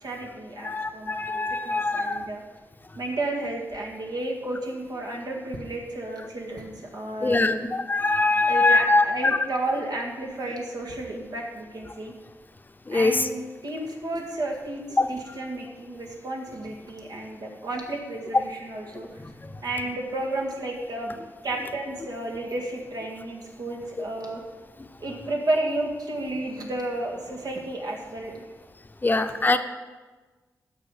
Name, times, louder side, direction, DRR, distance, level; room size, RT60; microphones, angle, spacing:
voice 1, 0.0-2.4 3.0-7.6 8.4-12.1 12.9-19.2 19.6-21.2 21.4-24.4 25.0-28.4 29.1-29.3, right 2 dB, 80° right, 0 dB, 1.9 m, -32 dB
voice 2, 0.6-2.3 7.2-9.4 12.9-13.3 15.0-15.1 18.3-18.4 19.4-19.5 29.0-29.6, left 3 dB, 30° left, 8 dB, 0.7 m, -22 dB
15.0 x 5.8 x 4.8 m, 1.3 s
wide cardioid pair, 85°, 7 cm